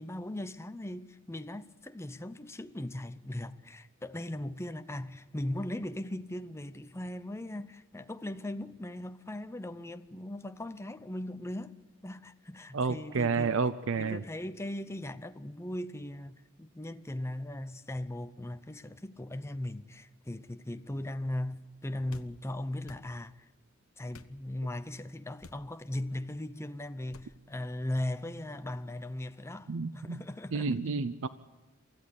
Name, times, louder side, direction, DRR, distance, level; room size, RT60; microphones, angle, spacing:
voice 1, 0.0-11.8 12.0-13.6 14.0-23.4 24.0-30.8, left 1 dB, 15° left, 0.7 m, -38 dB
voice 2, 12.7-14.2 29.7-30.2 30.5-31.3, right 4 dB, 65° right, 0.6 m, -30 dB
sound 1, 22.1-22.3 22.8-23.1 24.1-24.3 25.4-25.7 27.1-27.3, left 3 dB, 90° left, 1.0 m, -51 dB
24.5 x 15.0 x 8.3 m
head